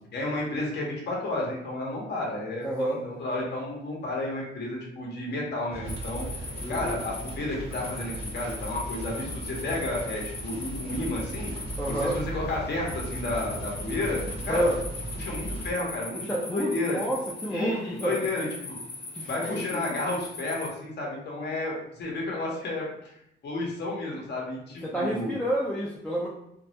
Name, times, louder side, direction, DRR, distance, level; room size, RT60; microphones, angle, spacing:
voice 1, 0.1-6.3 6.7-11.5 11.9-14.7 15.2-16.2 16.5-17.0 17.5-18.8 19.3-23.1 23.4-25.3, left 2 dB, 60° left, -2 dB, 0.8 m, -32 dB
voice 2, 2.6-3.0 6.6-7.0 11.8-12.2 14.5-14.8 16.1-18.3 19.1-19.9 24.8-26.3, right 1 dB, 5° left, -5 dB, 0.4 m, -29 dB
sound 1, 5.7-15.7, right 1 dB, 30° right, 0.7 m, -37 dB
sound 2, 5.9-20.7, left 2 dB, 30° left, 0.7 m, -40 dB
2.2 x 2.0 x 2.7 m, 0.75 s
cardioid pair, 90°, 20 cm